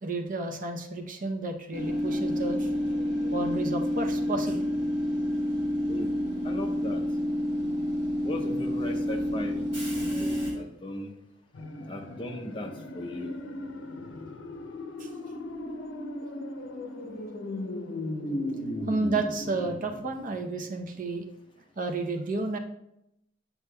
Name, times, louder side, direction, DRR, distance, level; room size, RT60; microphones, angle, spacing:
voice 1, 0.0-2.7 3.3-4.8 15.0-15.1 18.9-21.2 21.8-22.6, right 3 dB, 45° right, 4 dB, 0.7 m, -31 dB
Train / Subway metro underground, 1.7-10.5, equal, 30° right, 2.0 m, -29 dB
voice 2, 6.4-7.0 8.2-9.7 10.1-11.1 11.9-13.4, left 1 dB, 25° left, 3 dB, 0.6 m, -37 dB
sound 1, 11.5-20.7 21.0-21.1, left 1 dB, 75° left, 0.7 m, -37 dB
8.1 x 5.8 x 2.2 m, 0.82 s
head